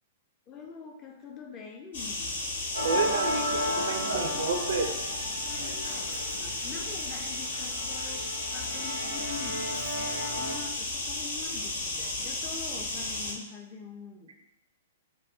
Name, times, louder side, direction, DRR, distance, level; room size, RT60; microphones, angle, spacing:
voice 1, 0.5-2.5 5.4-10.1 10.3-14.3, left 6 dB, 25° left, 1 dB, 0.4 m, -45 dB
sound 1, 1.9-13.3, left 2 dB, 60° left, 0.7 m, -34 dB
Musical instrument, 2.7-10.5, left 1 dB, 80° right, 0.8 m, -34 dB
voice 2, 2.8-4.9, right 5 dB, 60° right, 4 dB, 0.4 m, -30 dB
2.3 x 2.3 x 3.5 m, 0.91 s
figure-of-eight pair, 110°, 0 cm